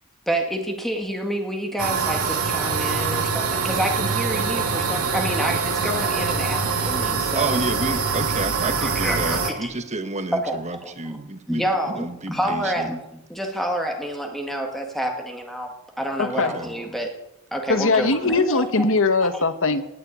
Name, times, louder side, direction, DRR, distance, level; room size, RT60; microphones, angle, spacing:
voice 1, 0.3-7.6 8.8-9.7 10.3-11.2 11.5-15.7 16.0-17.1 17.5-18.8 19.3-19.4, right 1 dB, ahead, 2 dB, 1.9 m, -28 dB
sound 1, 1.8-9.5, right 5 dB, 70° right, 2.2 m, -24 dB
voice 2, 7.3-11.7 11.9-12.9 16.3-16.7, right 2 dB, 30° right, 9 dB, 1.3 m, -30 dB
voice 3, 16.2-16.6 17.7-19.8, left 3 dB, 60° left, 10 dB, 1.3 m, -21 dB
18.5 x 8.1 x 8.6 m, 0.86 s
head